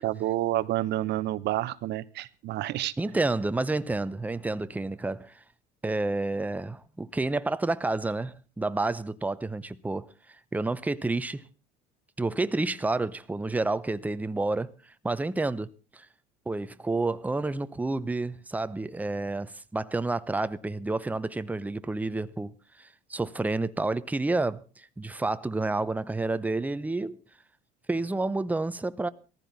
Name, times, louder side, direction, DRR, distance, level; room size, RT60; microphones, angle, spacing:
voice 1, 0.0-2.9, right 15 dB, 60° right, 1.0 m, -29 dB
voice 2, 3.0-5.3 5.8-10.1 10.5-11.5 12.2-14.7 15.0-16.1 16.5-27.2 27.9-29.1, right 2 dB, 10° right, 0.7 m, -29 dB
18.0 x 15.0 x 4.1 m
supercardioid pair, 95°, 20 cm